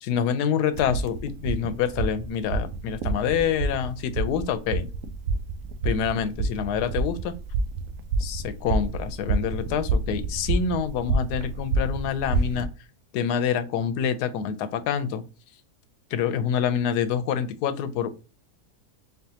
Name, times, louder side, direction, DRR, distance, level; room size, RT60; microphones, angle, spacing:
voice 1, 0.0-4.9 5.8-7.3 8.2-12.7 13.1-15.2 16.1-18.1, left 8 dB, 85° left, 11 dB, 1.2 m, -26 dB
sound 1, 0.7-12.7, right 3 dB, 70° right, 0.8 m, -28 dB
3.8 x 3.5 x 2.7 m, 0.32 s
omnidirectional pair, 1.7 m